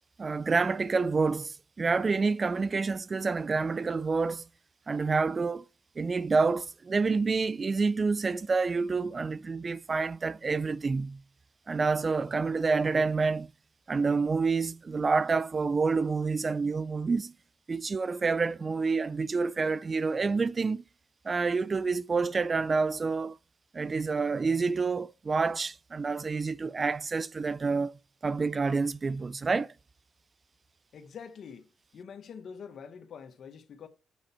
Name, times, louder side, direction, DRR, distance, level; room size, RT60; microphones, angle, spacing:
voice 1, 0.2-4.4 4.9-5.7 6.0-11.2 11.7-13.5 13.9-17.3 17.7-20.8 21.2-23.4 23.7-27.9 28.2-29.7, right 4 dB, 35° right, 0.3 m, -28 dB
voice 2, 30.9-33.9, left 6 dB, 65° left, 1.3 m, -45 dB
9.0 x 5.5 x 4.3 m
cardioid pair, 75°, 0 cm